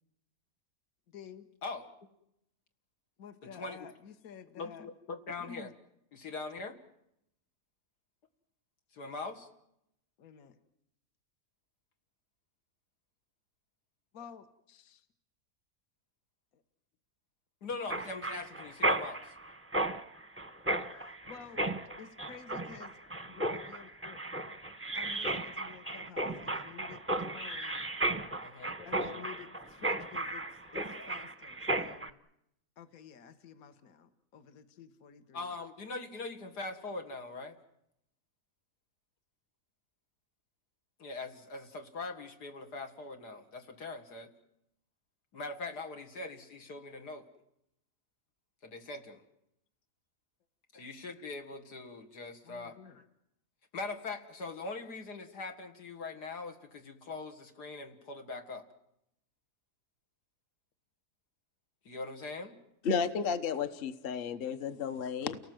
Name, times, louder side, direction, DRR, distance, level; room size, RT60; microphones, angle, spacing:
voice 1, 1.1-1.5 3.2-4.9 5.4-5.7 10.2-10.6 14.1-15.1 16.5-16.6 20.9-21.6 22.0-24.6 24.9-27.9 28.6-32.2 32.8-35.5 50.7-50.9 52.4-53.0, left 7 dB, 60° left, 9 dB, 1.6 m, -51 dB
voice 2, 3.4-3.8 4.6-5.7 6.1-6.8 8.9-9.5 17.6-19.3 28.4-28.8 35.3-37.6 41.0-44.3 45.3-47.3 48.6-49.2 50.7-53.0 53.7-58.6 61.9-62.6, left 3 dB, 85° left, 5 dB, 2.5 m, -42 dB
Mechanisms, 17.9-32.1, right 2 dB, 10° right, 0.7 m, -35 dB
voice 3, 62.8-65.4, left 6 dB, 40° left, 11 dB, 1.1 m, -32 dB
30.0 x 18.5 x 7.9 m, 0.81 s
omnidirectional pair, 1.7 m